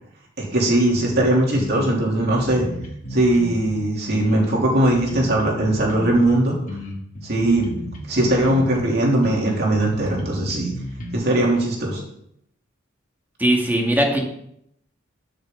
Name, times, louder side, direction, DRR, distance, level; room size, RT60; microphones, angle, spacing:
voice 1, 0.4-2.6 3.1-6.5 7.2-7.7 8.1-10.7 11.1-12.0, right 1 dB, 55° right, -3 dB, 2.9 m, -20 dB
sound 1, 0.9-1.2 1.6-3.8 4.1-6.3 6.7-8.9 9.2-11.1, left 1 dB, 40° left, 2.4 m, -33 dB
voice 2, 13.4-14.2, right 1 dB, 10° right, 1 dB, 1.7 m, -19 dB
13.0 x 6.5 x 3.7 m, 0.73 s
head